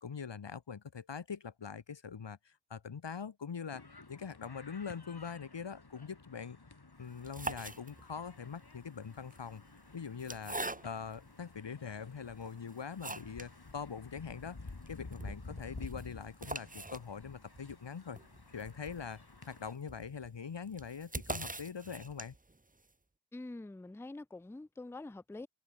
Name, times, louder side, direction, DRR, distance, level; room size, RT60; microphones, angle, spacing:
voice 1, 0.0-3.8 4.1-6.6 7.0-9.6 9.9-10.6 10.8-18.2 18.5-19.2 19.5-22.4, left 6 dB, 85° left, 1.0 m, -43 dB
sound 1, 3.7-19.7, left 3 dB, 60° left, 3.4 m, -52 dB
sound 2, 7.1-8.3 9.2-11.2 11.8-11.9 12.4-13.6 13.9-14.0 14.2-14.3 14.7-22.6, right 2 dB, 20° right, 1.0 m, -44 dB
voice 2, 23.3-25.5, left 2 dB, 5° left, 0.5 m, -45 dB
wide cardioid pair, 45°, 42 cm